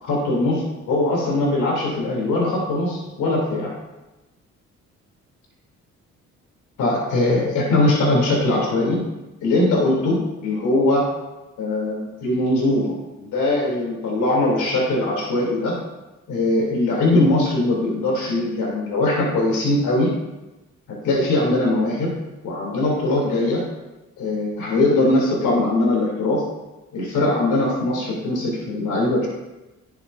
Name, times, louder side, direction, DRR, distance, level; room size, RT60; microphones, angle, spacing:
voice 1, 0.0-3.7 6.8-9.0 9.4-11.1 11.6-15.8 16.3-20.1 21.0-22.1 22.4-23.6 24.2-26.4 26.9-29.3, left 2 dB, 85° left, -3 dB, 3.3 m, -21 dB
11.0 x 7.2 x 2.7 m, 1.0 s
cardioid pair, 90°, 30 cm